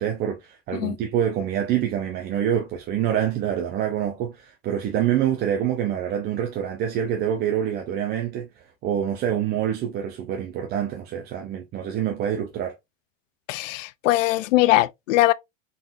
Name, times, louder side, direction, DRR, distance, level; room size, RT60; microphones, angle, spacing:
voice 1, 0.0-12.8, right 10 dB, 25° right, 0.6 m, -26 dB
voice 2, 13.5-15.3, left 16 dB, 75° left, 0.5 m, -21 dB
3.9 x 3.7 x 2.5 m
supercardioid pair, 140°, 38 cm